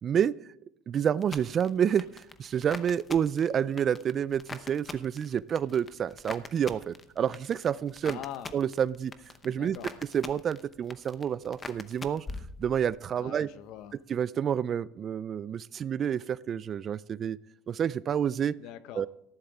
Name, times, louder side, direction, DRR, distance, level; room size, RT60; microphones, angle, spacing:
voice 1, 0.0-0.3 0.9-8.2 8.5-9.1 9.4-9.8 10.1-12.3 12.6-13.5 14.1-17.4 17.7-18.5 18.9-19.1, right 8 dB, 35° right, 20 dB, 0.3 m, -29 dB
sound 1, 1.2-13.1 13.4-14.0, left 4 dB, 20° left, 0.8 m, -44 dB
voice 2, 8.0-8.5 9.5-9.9 13.2-14.0 18.6-19.0, left 11 dB, 60° left, 13 dB, 0.8 m, -43 dB
14.0 x 11.0 x 3.5 m, 0.81 s
supercardioid pair, 130°, 0 cm